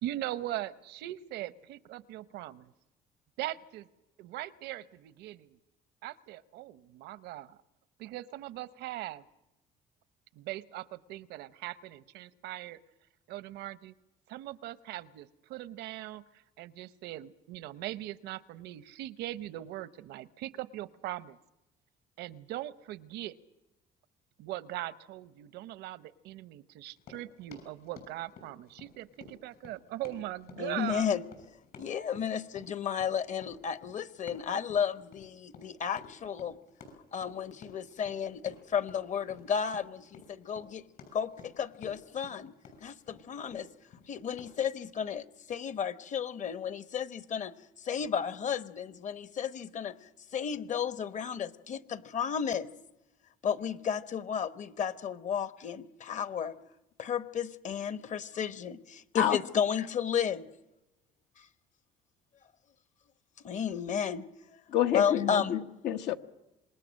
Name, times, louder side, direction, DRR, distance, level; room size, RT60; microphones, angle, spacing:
voice 1, 0.0-2.7 3.4-3.9 4.2-5.6 6.0-7.6 8.0-9.2 10.3-12.8 13.3-13.9 14.3-21.4 22.2-23.4 24.4-31.1, right 14 dB, 85° right, 0.8 m, -40 dB
Run, 26.9-44.6, left 4 dB, 65° left, 6.6 m, -53 dB
voice 2, 30.6-31.2 31.8-36.6 37.1-40.8 41.1-42.5 42.8-43.7 44.1-47.5 47.8-52.7 53.4-56.5 57.0-60.5 61.4-61.5 63.4-64.2 64.9-65.6, left 7 dB, 45° left, 1.1 m, -33 dB
voice 3, 64.7-66.2, left 11 dB, 85° left, 1.2 m, -28 dB
26.5 x 21.0 x 6.4 m
cardioid pair, 110°, 17 cm